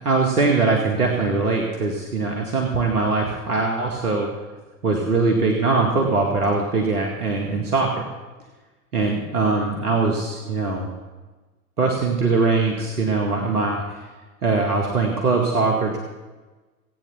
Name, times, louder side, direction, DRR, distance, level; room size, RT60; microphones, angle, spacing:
voice 1, 0.0-4.3 4.8-8.0 8.9-10.9 11.8-14.0 14.4-16.0, right 3 dB, 85° right, 0 dB, 2.2 m, -21 dB
17.5 x 9.1 x 7.1 m, 1.2 s
figure-of-eight pair, 85°, 45 cm